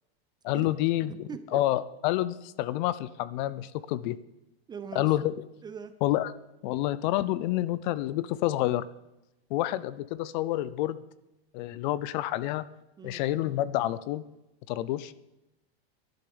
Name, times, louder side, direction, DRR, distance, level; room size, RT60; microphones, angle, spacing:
voice 1, 0.4-1.1 1.5-4.2 4.9-5.3 6.0-6.3 6.6-8.8 9.5-11.0 11.5-12.6 13.0-14.2 14.7-15.1, left 15 dB, 45° left, 17 dB, 0.6 m, -28 dB
voice 2, 1.1-1.4 4.7-5.2 5.6-5.9 13.0-13.2, right 7 dB, 15° right, 11 dB, 0.5 m, -40 dB
11.5 x 10.0 x 7.0 m, 0.93 s
supercardioid pair, 150°, 31 cm